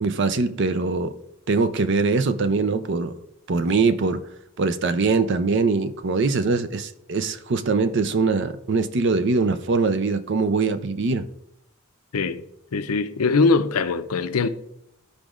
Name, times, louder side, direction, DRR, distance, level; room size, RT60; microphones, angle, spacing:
voice 1, 0.0-1.1 1.5-3.1 3.5-4.2 4.6-11.3, right 4 dB, 50° right, 0.5 m, -22 dB
voice 2, 12.1-12.4 12.7-14.5, left 4 dB, 85° left, 0.6 m, -21 dB
14.0 x 5.0 x 2.4 m
head